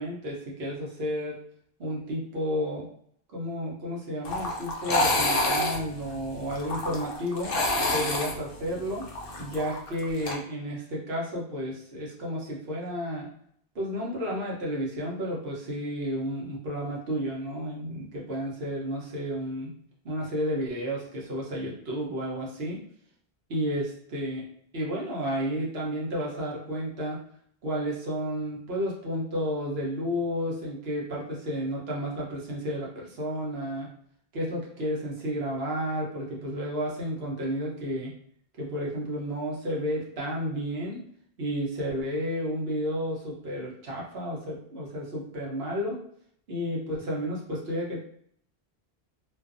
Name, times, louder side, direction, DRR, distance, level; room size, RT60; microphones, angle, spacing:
voice 1, 0.0-1.4 1.8-2.9 3.3-7.5 7.9-9.1 9.4-13.3 13.7-19.7 20.0-22.8 23.5-24.4 24.7-27.2 27.6-33.9 34.3-38.1 38.6-41.0 41.4-46.0 46.5-48.0, equal, 65° right, -3 dB, 1.0 m, -32 dB
sound 1, 4.2-10.3, left 2 dB, 60° left, 0.7 m, -28 dB
2.5 x 2.3 x 2.4 m, 0.65 s
omnidirectional pair, 1.1 m